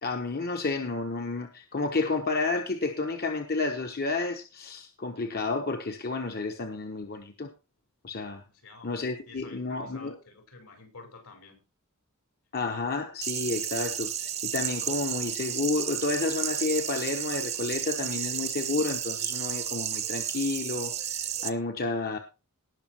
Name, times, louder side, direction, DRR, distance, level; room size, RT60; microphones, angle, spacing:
voice 1, 0.0-7.5 8.0-8.4 8.8-10.2 12.5-22.2, left 3 dB, 45° left, 1.1 m, -31 dB
voice 2, 8.4-8.9 9.3-11.6, left 3 dB, 75° left, 5.4 m, -50 dB
sound 1, 13.2-21.5, right 9 dB, 30° right, 0.8 m, -32 dB
18.5 x 6.3 x 4.5 m
head